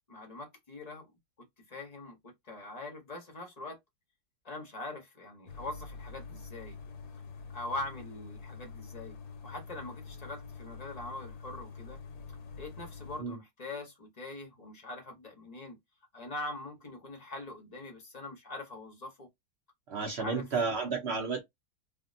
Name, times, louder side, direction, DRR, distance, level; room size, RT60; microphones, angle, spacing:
voice 1, 0.1-1.1 1.7-3.8 4.4-6.8 7.5-9.2 9.4-12.0 12.6-15.8 16.1-19.3 20.0-20.9, left 2 dB, 35° left, 0.7 m, -42 dB
sound 1, 5.5-13.2, left 4 dB, 70° left, 1.1 m, -46 dB
voice 2, 19.9-21.4, right 4 dB, 60° right, 0.6 m, -32 dB
3.5 x 2.2 x 2.5 m
omnidirectional pair, 1.7 m